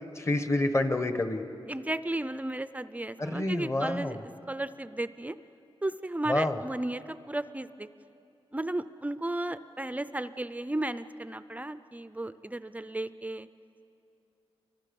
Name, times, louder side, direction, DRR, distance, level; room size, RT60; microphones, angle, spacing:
voice 1, 0.2-1.4 3.2-4.2 6.3-6.6, left 2 dB, 30° left, 8 dB, 1.2 m, -28 dB
voice 2, 1.7-5.4 5.8-7.9 8.5-13.5, right 1 dB, 15° right, 13 dB, 0.4 m, -34 dB
29.5 x 24.0 x 5.4 m, 2.7 s
wide cardioid pair, 130°, 10 cm